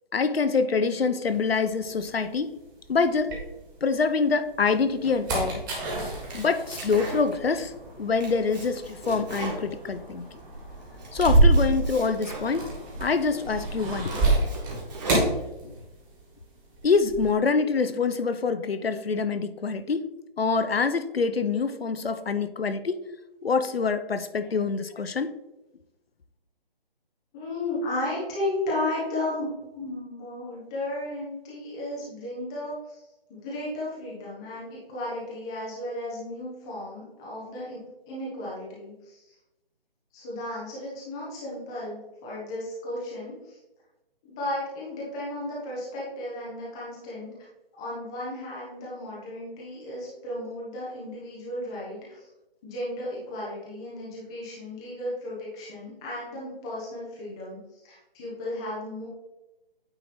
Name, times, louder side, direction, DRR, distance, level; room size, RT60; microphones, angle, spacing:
voice 1, 0.1-2.6 2.9-3.4 3.8-5.7 6.3-7.7 8.0-10.3 11.1-12.7 13.0-14.2 16.8-20.1 20.4-23.0 23.4-25.3, left 4 dB, 80° left, 11 dB, 0.7 m, -25 dB
sound 1, 1.3-4.0 4.5-16.3 16.5-17.3, right 2 dB, 20° right, 1.5 m, -28 dB
Domestic sounds home sounds, 6.0-7.5 7.9-10.4 10.8-12.8 13.3-13.4 13.8-15.8, right 1 dB, 45° right, 1.9 m, -39 dB
voice 2, 27.3-33.0 33.3-37.8 38.1-39.3 40.1-43.6 44.2-47.3 47.8-52.3 52.6-57.6 57.8-59.1, left 1 dB, 5° left, -6 dB, 0.5 m, -34 dB
9.0 x 3.0 x 4.0 m, 0.97 s
figure-of-eight pair, 150°, 29 cm